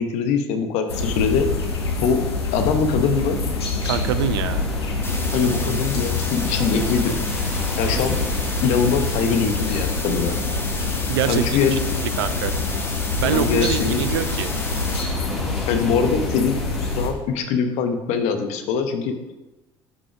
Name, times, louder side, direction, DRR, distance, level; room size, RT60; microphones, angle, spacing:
voice 1, 0.0-1.5 2.0-2.2 2.5-3.4 5.3-7.2 7.8-8.2 8.6-10.4 11.3-11.8 13.3-14.0 15.7-16.6 16.9-19.1, left 6 dB, 60° left, 7 dB, 1.0 m, -22 dB
sound 1, 0.9-17.1, left 3 dB, 85° left, 1.0 m, -26 dB
Storm in Vernazza, 3.8-17.0, equal, 5° right, 2.3 m, -37 dB
voice 2, 3.8-4.6 11.1-11.8 12.2-12.5 13.2-14.5, right 10 dB, 75° right, 12 dB, 0.5 m, -24 dB
sound 2, 5.0-15.0, left 2 dB, 20° left, 1.4 m, -32 dB
11.0 x 6.2 x 3.5 m, 1.1 s
figure-of-eight pair, 55°, 13 cm